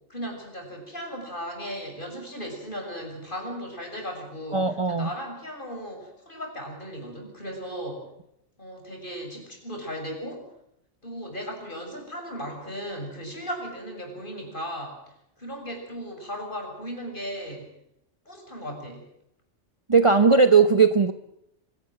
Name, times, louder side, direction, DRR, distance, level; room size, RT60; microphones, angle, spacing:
voice 1, 0.1-8.1 8.6-10.5 11.0-17.8 18.3-19.1, equal, 40° left, 2 dB, 7.1 m, -36 dB
voice 2, 4.5-5.1 19.9-21.1, right 4 dB, 30° right, 9 dB, 0.9 m, -18 dB
25.0 x 17.5 x 7.7 m, 0.78 s
omnidirectional pair, 1.3 m